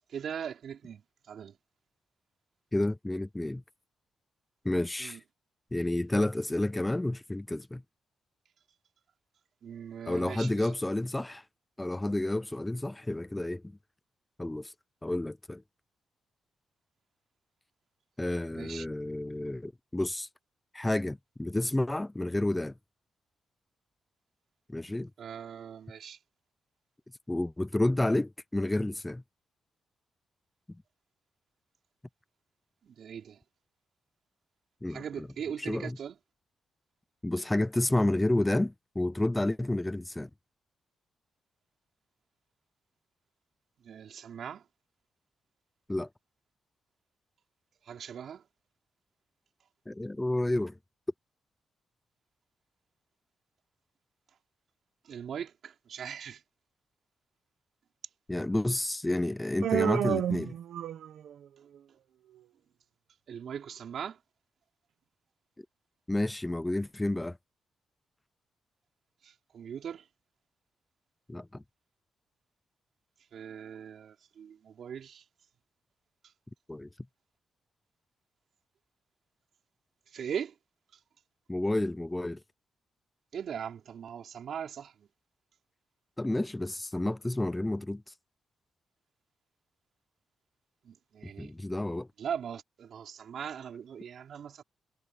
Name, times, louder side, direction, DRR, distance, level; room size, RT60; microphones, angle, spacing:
voice 1, 0.1-1.6 5.0-5.2 9.6-10.7 18.5-18.8 25.2-26.2 32.8-33.4 34.9-36.1 43.8-44.7 47.8-48.4 55.0-56.4 63.3-64.2 69.2-70.1 73.3-75.2 80.1-80.5 83.3-85.1 90.8-91.5 92.2-94.6, right 8 dB, 65° right, 5.2 m, -40 dB
voice 2, 2.7-3.6 4.6-5.2 5.7-7.8 10.1-11.4 11.8-13.7 14.4-14.7 15.0-15.6 18.2-20.3 20.7-22.7 24.7-25.1 27.3-29.2 30.7-30.8 34.8-35.3 35.6-36.0 37.2-40.3 45.9-46.1 49.9-50.8 58.3-60.6 66.1-67.4 71.3-71.6 76.7-76.9 81.5-82.4 86.2-88.0 91.4-92.1, left 1 dB, 10° left, 0.6 m, -30 dB
Human voice, 59.6-61.3, right 10 dB, 85° right, 1.4 m, -30 dB
cardioid pair, 105°, 0 cm